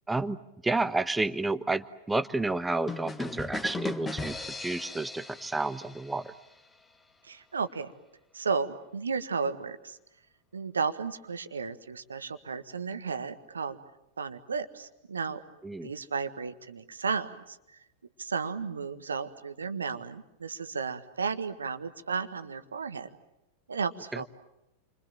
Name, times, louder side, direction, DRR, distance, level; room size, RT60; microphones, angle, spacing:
voice 1, 0.1-0.4 0.6-6.3 15.6-15.9 24.1-24.2, right 2 dB, 10° right, 14 dB, 1.1 m, -30 dB
sound 1, 2.9-6.6, left 3 dB, 15° left, 1.6 m, -37 dB
voice 2, 7.2-7.9 8.3-10.0 10.5-13.8 14.2-15.4 15.8-17.8 18.2-23.1 23.7-24.2, right 5 dB, 75° right, 11 dB, 1.5 m, -33 dB
30.0 x 25.0 x 7.5 m, 0.90 s
figure-of-eight pair, 90°, 0 cm